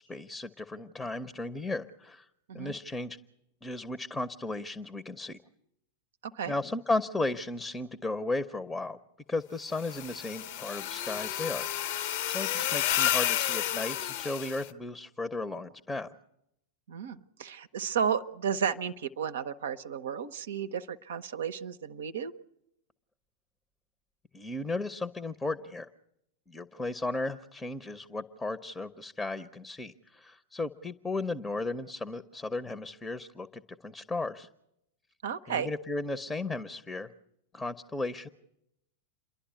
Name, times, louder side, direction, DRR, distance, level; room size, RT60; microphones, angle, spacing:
voice 1, 0.0-2.3 2.5-3.2 3.6-5.4 6.5-9.0 9.3-11.7 12.3-16.1 24.3-25.9 26.5-34.5 35.5-37.1 37.5-38.3, left 2 dB, 10° left, 15 dB, 0.8 m, -35 dB
voice 2, 6.2-6.6 12.4-12.7 16.9-22.3 35.2-35.7, right 7 dB, 65° right, 10 dB, 0.7 m, -33 dB
sound 1, 9.7-14.7, left 12 dB, 50° left, 0.8 m, -31 dB
28.5 x 11.5 x 9.4 m, 0.82 s
figure-of-eight pair, 90°, 0 cm